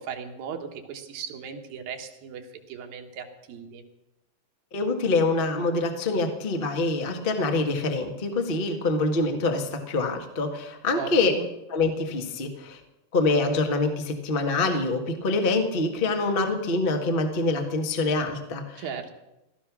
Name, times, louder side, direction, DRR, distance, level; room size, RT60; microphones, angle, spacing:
voice 1, 0.0-3.8 11.0-11.5 18.8-19.1, right 6 dB, 85° right, 4 dB, 3.2 m, -37 dB
voice 2, 4.7-11.3 11.7-12.8 13.1-18.8, left 3 dB, 90° left, 5 dB, 0.4 m, -25 dB
16.5 x 13.5 x 6.1 m, 0.92 s
omnidirectional pair, 4.0 m